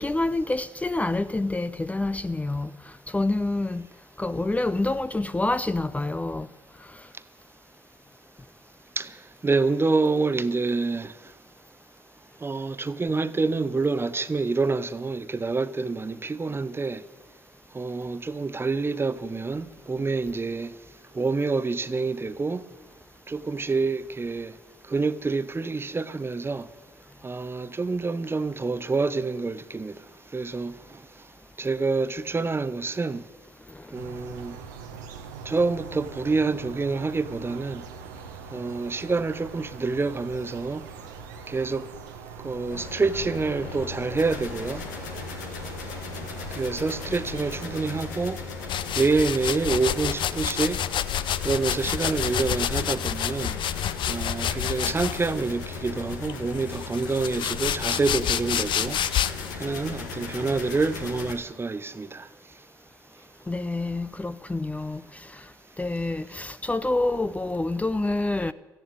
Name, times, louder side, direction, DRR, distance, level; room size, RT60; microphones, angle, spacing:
voice 1, 0.0-2.7 3.1-3.8 4.2-6.5 63.5-65.4 65.8-68.5, left 2 dB, 15° left, 0.6 m, -27 dB
voice 2, 9.4-11.1 12.4-17.0 17.7-20.7 21.1-22.6 23.3-24.5 24.9-26.6 27.2-29.9 30.3-30.7 31.6-33.2 33.9-34.5 35.5-37.8 38.5-40.8 41.5-41.8 42.4-44.8 46.6-48.4 49.0-50.8 51.4-53.6 54.1-59.0 59.6-62.3, right 3 dB, 25° right, 0.9 m, -27 dB
sound 1, 33.9-48.0, right 6 dB, 85° right, 1.1 m, -42 dB
sound 2, 42.7-61.3, left 4 dB, 85° left, 1.8 m, -37 dB
sound 3, 48.7-55.5 56.2-59.5, left 10 dB, 60° left, 0.6 m, -29 dB
13.5 x 11.0 x 9.0 m
hypercardioid pair, 55°, 10 cm